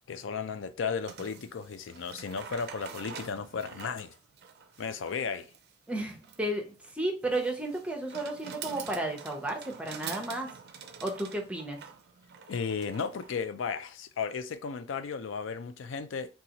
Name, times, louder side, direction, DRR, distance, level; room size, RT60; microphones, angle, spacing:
voice 1, 0.0-4.1 4.8-5.5 12.5-16.4, left 5 dB, 90° left, 0.4 m, -34 dB
sound 1, 1.0-13.4, right 7 dB, 60° right, 0.4 m, -46 dB
voice 2, 5.9-10.6 11.0-11.8, right 1 dB, 5° right, 0.7 m, -33 dB
4.0 x 2.4 x 2.9 m
head